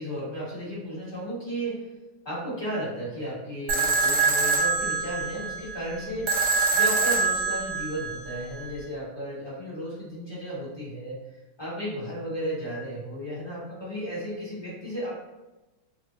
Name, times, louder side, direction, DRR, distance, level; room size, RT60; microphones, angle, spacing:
voice 1, 0.0-1.8 2.2-6.4 6.7-15.1, equal, 20° left, -10 dB, 0.7 m, -34 dB
sound 1, 3.7-8.7, right 4 dB, 85° right, 0.9 m, -25 dB
3.5 x 2.0 x 2.8 m, 1.1 s
omnidirectional pair, 2.4 m